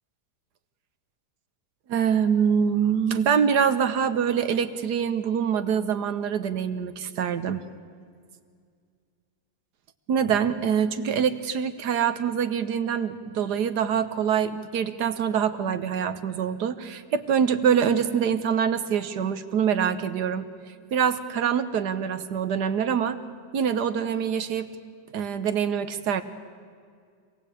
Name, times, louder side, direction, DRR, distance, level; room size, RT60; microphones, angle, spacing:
voice 1, 1.9-7.7 10.1-20.5 20.9-23.2 23.5-24.7 25.1-26.2, right 7 dB, 70° right, 11 dB, 1.6 m, -25 dB
25.5 x 18.0 x 8.5 m, 2.1 s
omnidirectional pair, 1.9 m